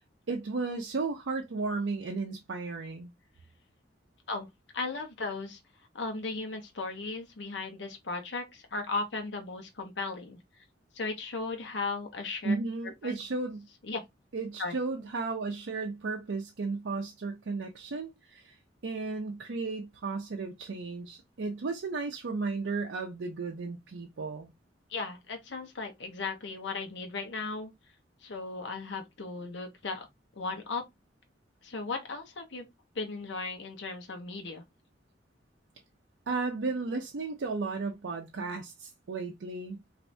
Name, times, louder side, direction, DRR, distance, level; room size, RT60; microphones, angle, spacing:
voice 1, 0.3-3.1 12.4-13.7 14.3-18.6 18.8-24.5 36.3-39.8, right 3 dB, 85° right, 0.5 m, -34 dB
voice 2, 4.7-5.6 5.9-10.4 10.9-12.5 13.0-13.2 13.9-14.0 14.6-14.8 24.9-27.7 28.2-30.1 30.4-30.8 31.6-32.7 32.9-34.6, left 3 dB, 70° left, 0.8 m, -36 dB
3.2 x 2.6 x 2.5 m
head